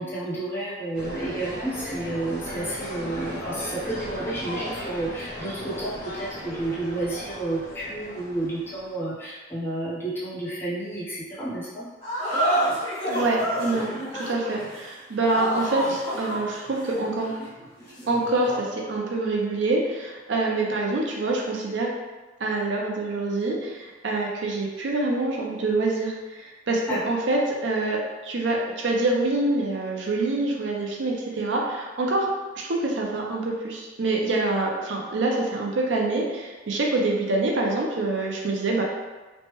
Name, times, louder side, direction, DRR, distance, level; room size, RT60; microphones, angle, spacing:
voice 1, 0.0-11.9 26.9-27.0, right 2 dB, 10° left, -9 dB, 0.7 m, -31 dB
sound 1, 0.9-8.9, equal, 50° left, 1.1 m, -36 dB
sound 2, 12.0-18.7, right 1 dB, 35° left, 1.2 m, -29 dB
voice 2, 13.1-17.3 18.1-21.9 22.4-32.3 32.5-38.8, right 2 dB, 70° right, -1 dB, 0.6 m, -26 dB
3.2 x 2.1 x 2.9 m, 1.2 s
head